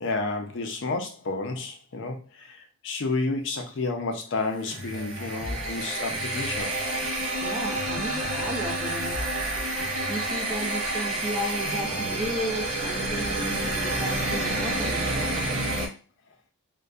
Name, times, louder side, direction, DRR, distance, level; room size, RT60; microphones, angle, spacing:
voice 1, 0.0-6.8, left 3 dB, 55° left, 0.5 m, -31 dB
sound 1, 4.6-15.9, right 2 dB, 75° right, 0.8 m, -29 dB
sound 2, 4.7-12.6, equal, 50° right, 1.1 m, -40 dB
voice 2, 7.4-9.2 10.1-15.4, equal, 5° right, 0.4 m, -34 dB
2.5 x 2.2 x 2.3 m
head